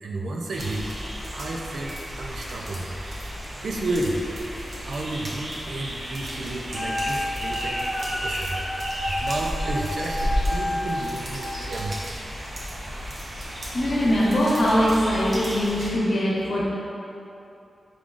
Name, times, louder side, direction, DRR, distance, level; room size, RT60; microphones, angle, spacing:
voice 1, 0.0-0.9 1.3-2.9 3.6-8.6 9.0-12.1 12.7-13.2, right 2 dB, 80° right, -1 dB, 0.4 m, -32 dB
sound 1, 0.5-15.9, equal, 50° right, 0.8 m, -33 dB
Wind instrument woodwind instrument, 6.7-11.5, left 1 dB, 30° left, 0.6 m, -30 dB
voice 2, 13.7-16.6, equal, 70° left, -7 dB, 1.0 m, -22 dB
4.7 x 3.7 x 2.4 m, 2.7 s
wide cardioid pair, 110°, 0 cm